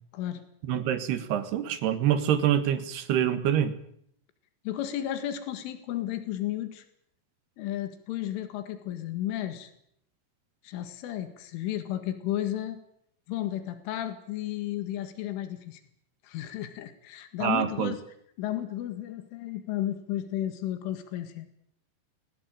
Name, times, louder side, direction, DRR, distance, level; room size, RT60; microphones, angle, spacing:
voice 1, 0.6-3.7 17.4-17.9, right 10 dB, 65° right, 11 dB, 3.4 m, -26 dB
voice 2, 4.7-6.8 7.6-9.7 10.6-12.8 13.3-15.8 16.2-18.0 18.4-21.5, left 12 dB, 85° left, 9 dB, 4.4 m, -33 dB
23.0 x 18.5 x 9.1 m, 0.70 s
omnidirectional pair, 5.5 m